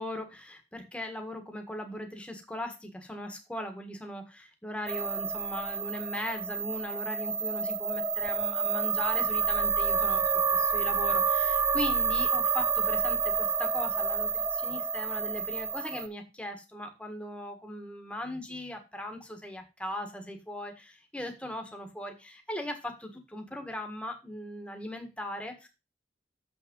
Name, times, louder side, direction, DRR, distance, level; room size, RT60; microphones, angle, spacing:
voice 1, 0.0-25.7, left 1 dB, 5° left, 4 dB, 1.6 m, -39 dB
sound 1, 4.9-16.1, right 5 dB, 15° right, 0.4 m, -28 dB
7.2 x 6.2 x 5.3 m, 0.27 s
head